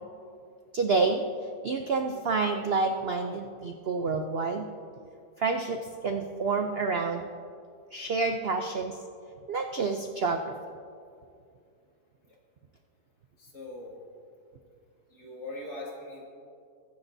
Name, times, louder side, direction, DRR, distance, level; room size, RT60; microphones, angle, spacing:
voice 1, 0.7-1.2 1.6-4.7 5.4-7.3 7.9-9.0 9.5-10.5, right 4 dB, 90° right, 4 dB, 0.5 m, -28 dB
voice 2, 13.4-13.9 15.1-16.2, left 2 dB, 60° left, -4 dB, 3.1 m, -41 dB
22.0 x 10.0 x 2.7 m, 2.4 s
omnidirectional pair, 1.9 m